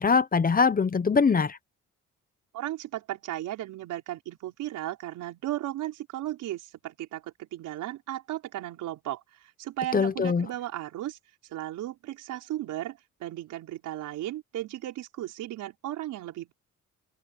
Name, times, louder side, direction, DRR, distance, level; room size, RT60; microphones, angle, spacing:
voice 1, 0.0-1.6 9.9-10.5, left 5 dB, 30° left, 0.9 m, -22 dB
voice 2, 2.5-9.2 9.6-11.2 11.5-16.5, right 14 dB, 85° right, 5.4 m, -35 dB
open air
cardioid pair, 90°, 30 cm